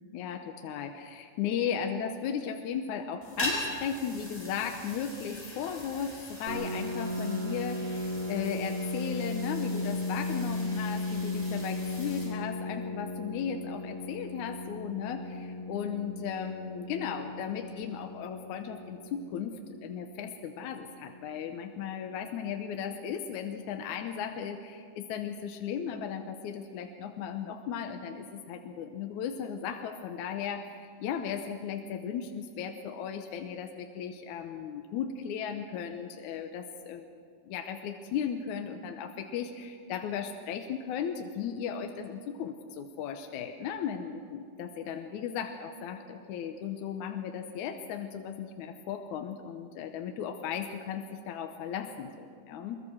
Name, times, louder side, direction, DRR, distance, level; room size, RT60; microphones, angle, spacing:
voice 1, 0.1-37.1 37.5-52.8, left 7 dB, 70° left, 5 dB, 2.0 m, -36 dB
Melting Ice, 3.2-12.3, left 1 dB, 5° left, 6.4 m, -41 dB
Piano, 6.5-21.9, left 2 dB, 40° right, 1.0 m, -36 dB
23.5 x 22.0 x 6.4 m, 2.2 s
omnidirectional pair, 4.2 m